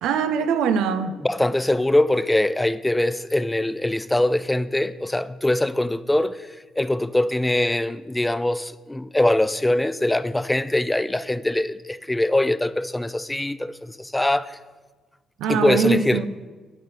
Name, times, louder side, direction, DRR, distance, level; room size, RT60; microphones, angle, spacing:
voice 1, 0.0-1.2 15.4-16.3, right 6 dB, 90° right, 0.6 m, -22 dB
voice 2, 1.2-6.5 6.8-14.6 15.5-16.3, left 1 dB, 10° left, 0.4 m, -22 dB
9.1 x 9.0 x 5.6 m
cardioid pair, 90°, 0 cm